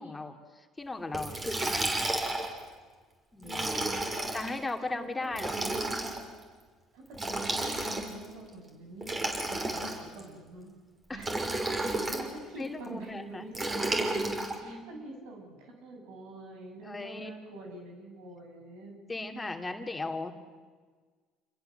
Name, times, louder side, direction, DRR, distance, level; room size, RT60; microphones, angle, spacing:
voice 1, 0.0-2.0 3.3-3.7 4.3-5.5 11.1-11.2 12.6-13.4 14.6-15.0 16.8-17.3 19.1-20.3, left 2 dB, 15° left, 4 dB, 2.7 m, -37 dB
Liquid, 1.1-2.6 3.4-4.5 5.3-6.2 7.1-8.3 9.0-10.2 11.2-12.3 13.5-14.6, right 2 dB, 25° right, 5.7 m, -31 dB
voice 2, 3.4-4.0 4.9-5.1 5.3-5.8 6.9-10.7 11.1-11.3 11.6-13.9 14.6-19.0, right 2 dB, 75° right, 3 dB, 7.3 m, -46 dB
28.0 x 21.5 x 8.0 m, 1.5 s
hypercardioid pair, 75°, 0 cm